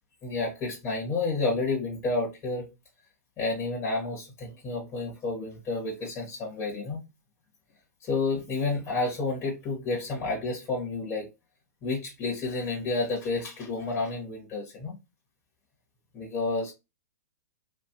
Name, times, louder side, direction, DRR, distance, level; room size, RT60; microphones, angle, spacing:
voice 1, 0.2-2.7 3.4-7.0 8.0-11.3 11.8-14.9 16.1-16.7, left 3 dB, 25° left, 1.4 m, -30 dB
2.8 x 2.6 x 2.9 m
hypercardioid pair, 130°, 9 cm